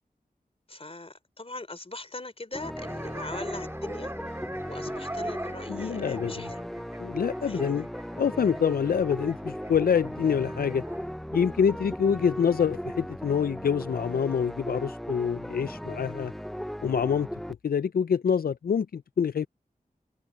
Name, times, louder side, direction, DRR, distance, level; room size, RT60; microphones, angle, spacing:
voice 1, 0.7-4.1 4.6-6.7 7.5-7.9, left 2 dB, 40° left, 3.6 m, -40 dB
sound 1, 2.5-17.5, equal, ahead, 0.5 m, -37 dB
sound 2, 2.8-11.0, right 1 dB, 15° right, 3.8 m, -42 dB
voice 2, 5.7-6.5 7.0-7.9 8.2-10.8 11.3-16.3 16.8-17.3 17.6-19.5, left 7 dB, 80° left, 0.4 m, -26 dB
wide cardioid pair, 55°, 15 cm